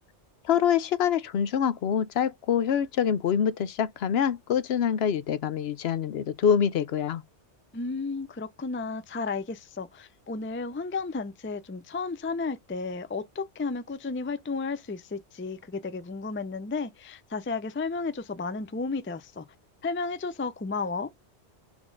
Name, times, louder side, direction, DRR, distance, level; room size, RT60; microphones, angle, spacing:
voice 1, 0.4-7.2, left 8 dB, 65° left, 0.8 m, -25 dB
voice 2, 7.7-19.5 19.8-21.1, left 4 dB, 20° left, 0.3 m, -33 dB
6.1 x 3.6 x 5.1 m
omnidirectional pair, 1.2 m